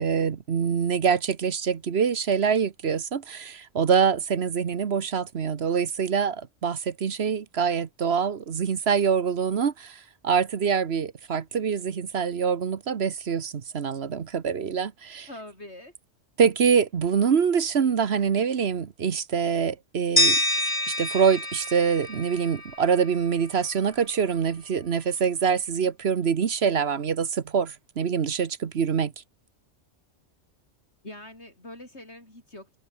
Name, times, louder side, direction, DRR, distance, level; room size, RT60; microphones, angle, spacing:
voice 1, 0.0-15.3 16.4-20.7 21.0-29.1, right 6 dB, 60° right, 1.3 m, -25 dB
voice 2, 15.3-15.9 31.0-32.8, left 1 dB, 65° left, 8.3 m, -43 dB
sound 1, 20.2-23.1, left 1 dB, 15° left, 2.6 m, -26 dB
omnidirectional pair, 1.2 m